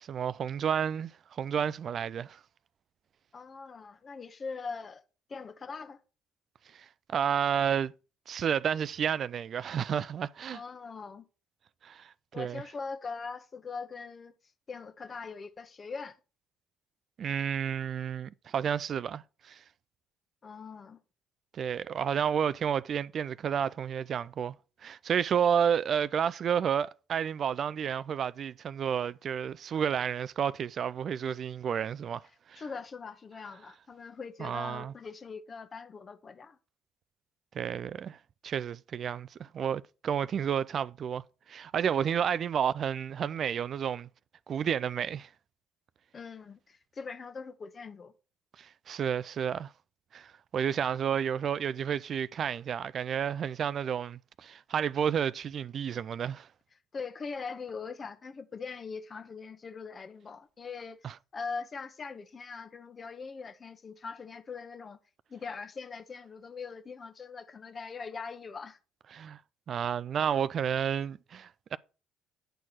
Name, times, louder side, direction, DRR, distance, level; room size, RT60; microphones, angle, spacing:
voice 1, 0.0-2.4 6.7-7.9 8.3-10.6 11.8-12.6 17.2-19.6 21.5-24.5 24.8-32.2 32.5-32.6 34.4-34.9 37.5-38.2 38.4-41.2 41.5-44.1 44.5-45.3 48.6-49.7 50.1-56.5 61.0-61.1 69.1-69.4 69.7-71.8, right 8 dB, 50° right, 0.3 m, -31 dB
voice 2, 3.3-5.0 5.3-6.0 10.5-11.2 12.3-14.3 14.7-16.2 20.4-21.0 32.6-36.6 46.1-48.1 56.9-65.0 65.3-68.8, left 5 dB, 40° left, 1.0 m, -41 dB
9.1 x 4.5 x 5.8 m
hypercardioid pair, 55°, 0 cm